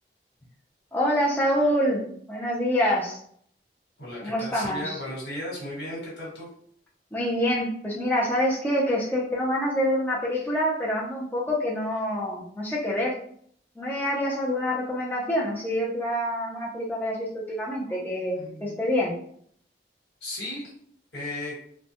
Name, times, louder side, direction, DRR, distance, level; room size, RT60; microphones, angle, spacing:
voice 1, 0.9-2.0 2.3-3.2 4.2-5.0 7.1-13.2 13.8-19.1, equal, 10° left, -5 dB, 0.4 m, -26 dB
voice 2, 4.0-6.5 18.3-18.9 20.2-20.7 21.1-21.6, left 1 dB, 75° left, -6 dB, 1.3 m, -35 dB
2.2 x 2.0 x 2.7 m, 0.62 s
head